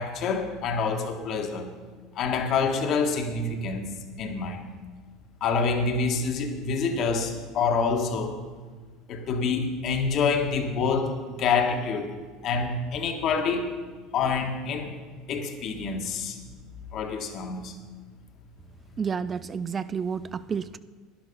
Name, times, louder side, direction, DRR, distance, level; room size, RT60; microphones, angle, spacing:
voice 1, 0.0-1.7 2.1-3.8 4.2-4.7 5.4-8.3 9.1-12.1 12.4-13.7 14.1-14.9 15.3-16.4 16.9-17.7, left 5 dB, 50° left, 4 dB, 1.6 m, -27 dB
voice 2, 19.0-20.8, right 6 dB, 30° right, 15 dB, 0.4 m, -30 dB
11.5 x 10.5 x 5.4 m, 1.5 s
hypercardioid pair, 80°, 0 cm